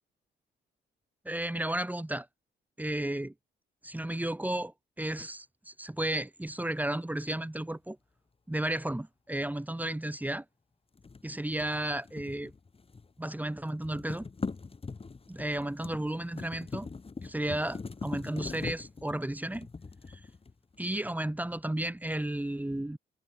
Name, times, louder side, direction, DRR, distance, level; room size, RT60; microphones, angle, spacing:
voice 1, 1.2-2.3 2.8-3.3 3.8-8.0 8.5-10.4 11.2-12.5 13.2-14.3 15.3-16.9 17.2-19.7 20.1-20.2 20.8-23.0, right 1 dB, 10° right, 4.3 m, -33 dB
sound 1, 11.0-13.2 13.5-20.8, left 4 dB, 30° left, 5.8 m, -42 dB
cardioid pair, 90°, 20 cm